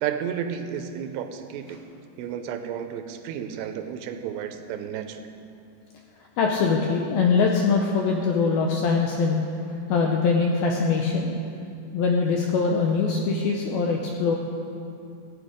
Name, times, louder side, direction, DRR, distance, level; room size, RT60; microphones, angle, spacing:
voice 1, 0.0-1.8 2.2-5.2, right 8 dB, 85° right, 7 dB, 2.8 m, -32 dB
voice 2, 6.4-9.4 9.9-11.4 11.9-14.4, left 4 dB, 80° left, 0 dB, 2.2 m, -22 dB
15.5 x 9.0 x 5.1 m, 2.6 s
omnidirectional pair, 5.0 m